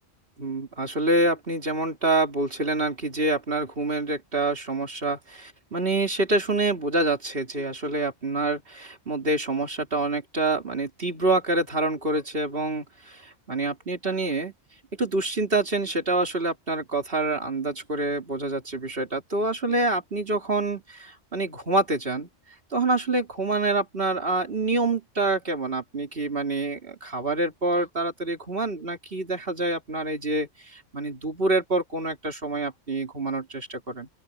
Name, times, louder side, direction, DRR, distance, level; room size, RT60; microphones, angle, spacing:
voice 1, 0.4-14.5 15.0-22.3 22.7-34.1, right 2 dB, 45° right, 3.3 m, -26 dB
open air
omnidirectional pair, 1.4 m